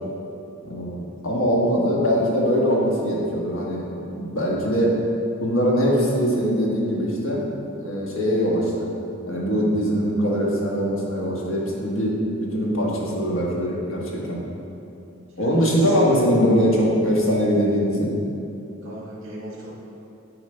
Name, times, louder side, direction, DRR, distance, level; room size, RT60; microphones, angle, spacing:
voice 1, 0.6-4.9 5.4-7.4 7.8-8.9 9.3-12.1 12.5-14.4 15.4-18.1, equal, 85° left, -3 dB, 1.4 m, -22 dB
voice 2, 15.3-16.2 18.8-19.7, right 1 dB, 60° right, -4 dB, 1.2 m, -38 dB
9.1 x 4.9 x 3.4 m, 2.9 s
head